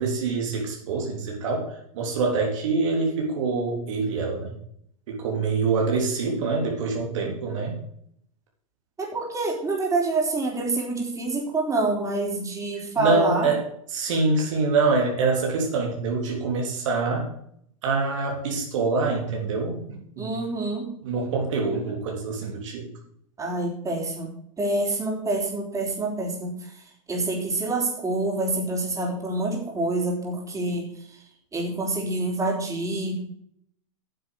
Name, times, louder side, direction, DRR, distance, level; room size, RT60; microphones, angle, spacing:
voice 1, 0.0-4.5 5.1-7.8 12.7-13.6 13.9-17.3 17.8-20.3 21.0-22.9, right 4 dB, 65° right, 0 dB, 3.6 m, -25 dB
voice 2, 9.0-13.5 20.2-20.9 23.4-24.3 24.6-26.7 27.1-31.2 31.5-33.3, right 2 dB, 20° right, -1 dB, 4.1 m, -27 dB
9.6 x 7.5 x 6.7 m, 0.68 s
hypercardioid pair, 100°, 17 cm